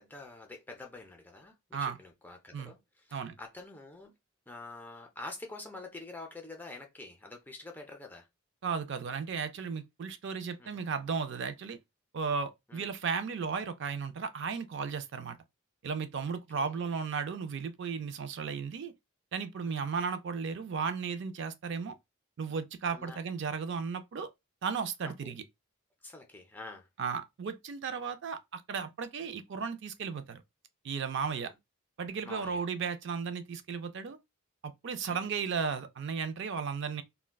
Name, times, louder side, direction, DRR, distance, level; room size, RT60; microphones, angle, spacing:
voice 1, 0.0-4.1 4.5-8.3 10.6-10.9 12.7-12.9 16.3-16.9 19.6-19.9 22.9-23.2 25.0-25.3 26.0-26.9 31.1-31.6 32.2-32.6 35.1-35.3, left 2 dB, 10° left, 0.4 m, -47 dB
voice 2, 8.6-11.8 12.1-15.4 15.8-18.9 19.3-21.9 22.4-24.3 24.6-25.4 27.0-30.4 30.8-31.5 32.0-34.2 34.8-37.0, right 5 dB, 60° right, 0.4 m, -35 dB
3.5 x 2.1 x 2.2 m
head